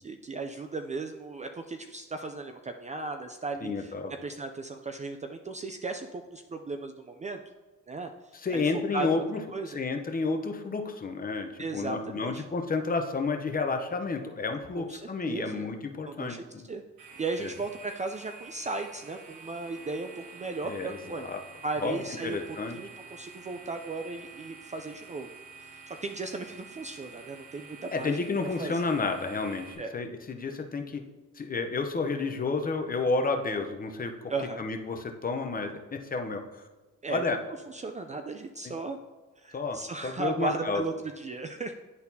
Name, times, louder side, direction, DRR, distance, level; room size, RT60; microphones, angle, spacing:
voice 1, 0.0-3.9 4.2-7.4 7.9-8.1 8.5-9.2 9.5-9.8 11.6-12.4 14.8-15.7 16.0-16.8 17.2-21.3 21.6-22.4 22.7-25.3 25.6-28.2 28.6-28.9 29.8-29.9 34.3-34.7 37.0-37.2 37.7-39.0 39.4-41.7, right 3 dB, 25° right, 6 dB, 0.4 m, -36 dB
voice 2, 3.6-4.1 8.4-9.4 9.7-16.6 17.4-17.5 20.6-21.0 21.2-21.4 21.8-22.0 22.2-22.8 27.9-29.7 29.9-31.0 31.4-34.3 34.6-36.6 37.1-37.4 38.6-38.7 39.5-40.8, left 4 dB, 30° left, 5 dB, 0.7 m, -31 dB
sound 1, 17.0-29.8, right 4 dB, 80° right, 1.3 m, -48 dB
10.5 x 4.1 x 2.7 m, 1.2 s
cardioid pair, 90°, 30 cm